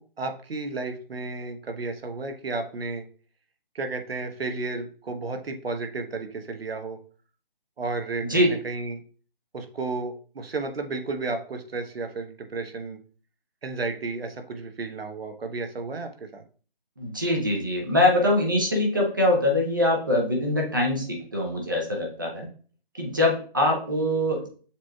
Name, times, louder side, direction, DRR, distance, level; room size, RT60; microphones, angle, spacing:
voice 1, 0.0-3.0 3.7-7.0 7.8-9.0 9.5-13.0 13.6-16.4, right 3 dB, 80° right, 6 dB, 1.0 m, -32 dB
voice 2, 8.2-8.5 17.0-22.5 23.0-24.5, left 1 dB, 20° right, -1 dB, 0.6 m, -23 dB
7.0 x 3.1 x 2.3 m, 0.41 s
hypercardioid pair, 170°, 29 cm